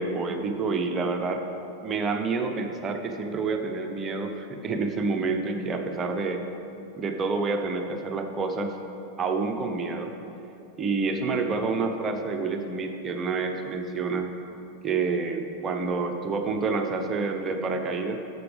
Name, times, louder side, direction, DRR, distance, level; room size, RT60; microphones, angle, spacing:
voice 1, 0.0-1.4 1.8-6.4 7.0-8.8 9.2-10.1 10.8-14.3 14.8-18.2, right 4 dB, 25° right, 5 dB, 0.8 m, -28 dB
13.0 x 7.0 x 3.4 m, 2.9 s
figure-of-eight pair, 90°, 0 cm